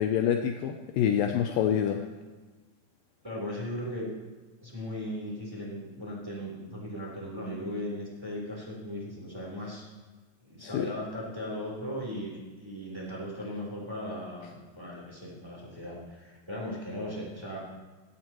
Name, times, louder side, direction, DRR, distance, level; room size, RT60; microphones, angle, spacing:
voice 1, 0.0-2.1 10.6-10.9, left 9 dB, 85° left, 5 dB, 2.0 m, -27 dB
voice 2, 3.2-4.1 4.6-9.8 10.4-17.6, equal, 5° right, -4 dB, 3.4 m, -37 dB
16.0 x 15.5 x 3.1 m, 1.3 s
omnidirectional pair, 4.8 m